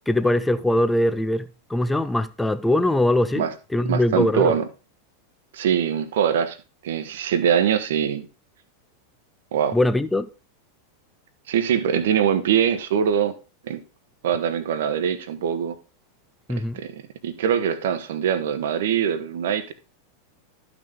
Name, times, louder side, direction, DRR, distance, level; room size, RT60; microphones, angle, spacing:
voice 1, 0.1-4.6 9.7-10.3 16.5-16.8, left 1 dB, 5° left, 0.6 m, -22 dB
voice 2, 3.8-4.7 5.5-6.6 6.8-8.3 9.5-9.8 11.5-13.3 13.6-13.8 14.2-15.8 16.7-19.7, right 8 dB, 55° right, 1.0 m, -23 dB
12.0 x 6.0 x 3.7 m
figure-of-eight pair, 90°, 0 cm